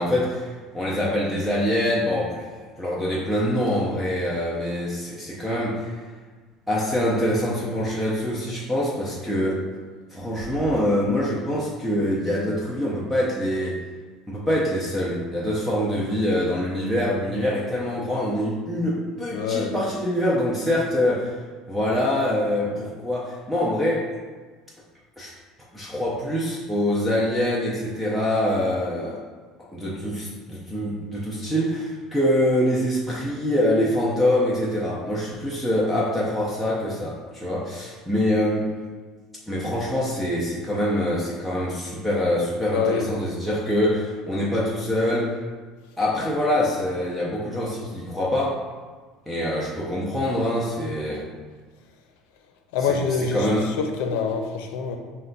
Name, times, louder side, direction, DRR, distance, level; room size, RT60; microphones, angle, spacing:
voice 1, 0.0-6.0 6.7-9.6 10.1-13.8 14.3-21.4 21.7-24.1 25.2-25.3 25.7-29.2 29.7-38.7 39.5-45.4 46.0-48.6 49.3-51.3 52.9-53.7, left 1 dB, ahead, -6 dB, 0.5 m, -24 dB
voice 2, 19.3-19.7 42.7-43.1 52.7-55.0, left 5 dB, 90° left, 4 dB, 0.5 m, -25 dB
5.4 x 2.2 x 3.8 m, 1.4 s
cardioid pair, 170°, 0 cm